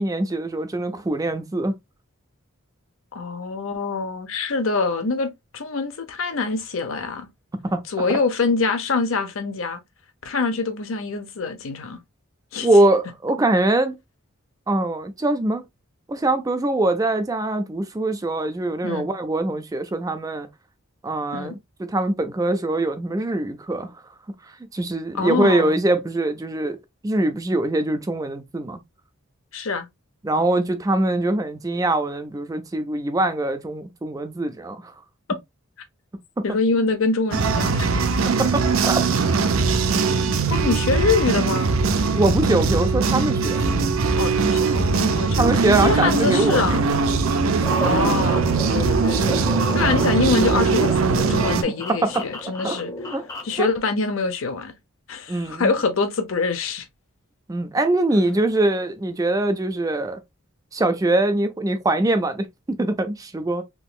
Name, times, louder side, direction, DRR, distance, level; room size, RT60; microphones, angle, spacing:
voice 1, 0.0-1.8 7.6-7.8 8.1-8.2 12.6-14.0 14.7-15.6 16.1-20.5 21.0-23.9 24.7-26.8 27.0-28.8 30.2-34.9 36.4-36.5 38.4-39.0 42.1-43.6 45.4-46.6 49.9-50.0 51.9-52.3 52.6-52.8 53.1-53.2 53.6-53.7 55.3-55.7 57.5-60.2 60.7-63.6, right 2 dB, 15° right, 0.3 m, -23 dB
voice 2, 3.1-7.3 7.9-9.8 10.2-12.0 12.5-12.7 18.8-19.1 21.3-21.5 25.1-25.8 29.5-29.9 36.4-38.0 40.5-41.8 44.2-45.5 45.8-46.8 47.8-48.5 48.7-49.3 49.7-52.9 53.4-54.7 55.1-56.9, left 4 dB, 70° left, 0.7 m, -24 dB
sound 1, 37.3-51.6, right 4 dB, 75° right, 0.5 m, -21 dB
sound 2, 47.6-53.6, left 1 dB, 15° left, 0.7 m, -31 dB
3.6 x 2.9 x 2.3 m
head